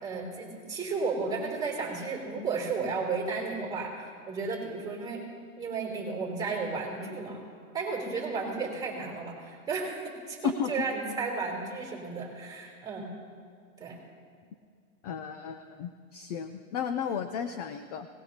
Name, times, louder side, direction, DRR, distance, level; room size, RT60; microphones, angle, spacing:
voice 1, 0.0-5.2 5.6-7.4 7.7-9.9 10.3-13.1 13.8-14.0, right 4 dB, 10° right, -1 dB, 3.3 m, -33 dB
voice 2, 15.0-18.1, left 7 dB, 30° left, 9 dB, 0.4 m, -34 dB
22.5 x 18.5 x 2.9 m, 2.1 s
supercardioid pair, 150°, 43 cm